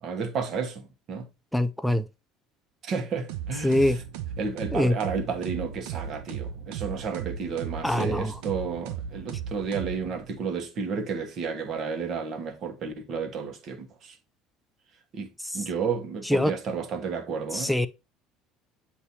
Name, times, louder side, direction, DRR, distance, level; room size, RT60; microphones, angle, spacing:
voice 1, 0.0-1.3 2.8-4.0 4.4-14.2 15.1-17.7, right 5 dB, 50° right, 1.3 m, -32 dB
voice 2, 1.5-2.0 3.6-4.0 4.7-5.0 7.8-8.3 16.3-16.5 17.5-17.9, left 1 dB, ahead, 0.5 m, -23 dB
sound 1, 3.3-10.4, right 8 dB, 80° right, 0.6 m, -36 dB
8.1 x 2.9 x 4.0 m
supercardioid pair, 90°, 0 cm